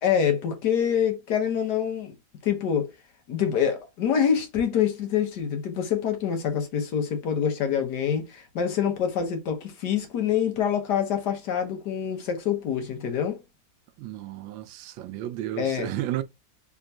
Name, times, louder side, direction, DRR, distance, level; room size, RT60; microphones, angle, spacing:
voice 1, 0.0-2.1 2.4-2.9 3.3-13.4 15.6-15.9, left 8 dB, 65° left, 1.5 m, -26 dB
voice 2, 14.0-16.2, right 13 dB, 90° right, 1.3 m, -32 dB
3.6 x 3.5 x 2.7 m
omnidirectional pair, 2.0 m